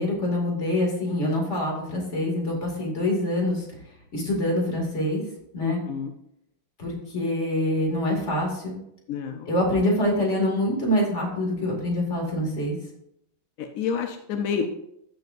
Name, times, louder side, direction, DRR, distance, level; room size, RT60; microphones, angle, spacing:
voice 1, 0.0-3.6 4.1-5.2 5.5-5.8 6.8-8.8 9.5-12.8, left 1 dB, 35° left, -1 dB, 2.6 m, -25 dB
voice 2, 5.6-6.1 9.1-9.5 13.6-14.7, left 6 dB, 65° left, 5 dB, 0.8 m, -29 dB
14.0 x 7.0 x 2.6 m, 0.77 s
omnidirectional pair, 2.1 m